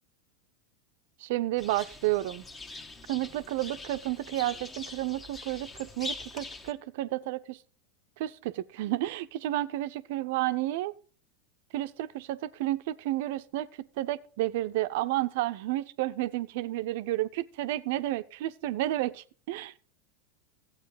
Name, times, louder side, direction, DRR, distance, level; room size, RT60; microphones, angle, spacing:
voice 1, 1.2-2.5 3.1-7.6 8.2-10.9 11.7-19.7, right 15 dB, 60° right, 0.6 m, -31 dB
sound 1, 1.6-6.7, left 3 dB, 20° left, 1.3 m, -43 dB
14.0 x 8.3 x 5.1 m
hypercardioid pair, 90°, 0 cm